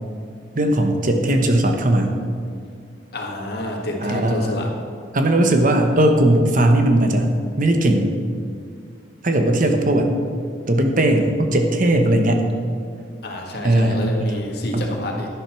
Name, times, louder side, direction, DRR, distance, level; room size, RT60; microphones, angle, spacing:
voice 1, 0.5-2.1 4.0-4.5 5.1-7.3 7.6-8.1 9.2-10.1 10.7-12.4 13.6-14.4 14.7-14.9, right 1 dB, 45° right, 4 dB, 1.1 m, -18 dB
voice 2, 3.1-4.7 13.2-15.3, left 1 dB, 60° left, 0 dB, 1.8 m, -28 dB
11.5 x 11.0 x 4.5 m, 2.2 s
head